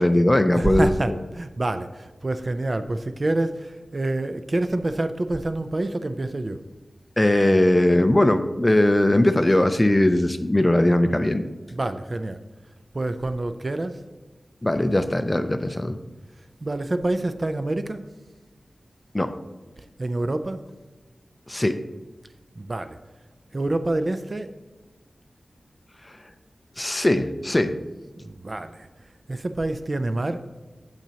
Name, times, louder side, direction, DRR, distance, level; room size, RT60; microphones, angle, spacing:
voice 1, 0.0-1.1 7.2-11.5 14.6-16.0 19.1-19.3 21.5-21.8 26.8-27.7, left 1 dB, 20° left, 9 dB, 0.4 m, -20 dB
voice 2, 0.5-6.6 11.7-12.4 12.9-14.0 16.6-18.0 20.0-20.6 22.6-23.0 23.5-24.5 28.2-28.9 29.3-30.4, right 2 dB, 40° right, 9 dB, 0.4 m, -27 dB
9.0 x 6.8 x 2.9 m, 1.2 s
wide cardioid pair, 95°, 0 cm